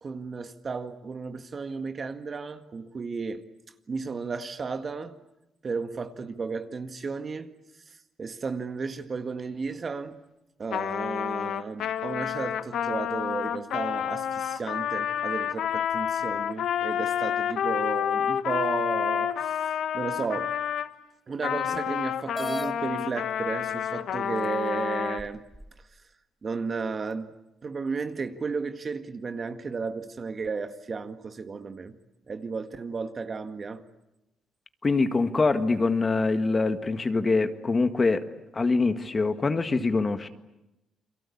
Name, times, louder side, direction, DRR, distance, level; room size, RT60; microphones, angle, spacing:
voice 1, 0.0-3.4 3.9-5.2 5.6-7.5 7.9-10.2 10.6-20.6 21.3-25.4 26.4-27.3 27.6-32.0 32.3-33.9, right 4 dB, 40° right, 1.8 m, -34 dB
Trumpet, 10.7-20.9 21.4-25.2, left 9 dB, 75° left, 1.3 m, -29 dB
sound 1, 22.3-22.7 23.7-23.8 24.4-24.5 25.2-25.9, equal, ahead, 1.2 m, -36 dB
voice 2, 34.8-38.3 38.5-40.3, left 3 dB, 30° left, 1.7 m, -24 dB
29.5 x 23.0 x 8.6 m
cardioid pair, 90°, 0 cm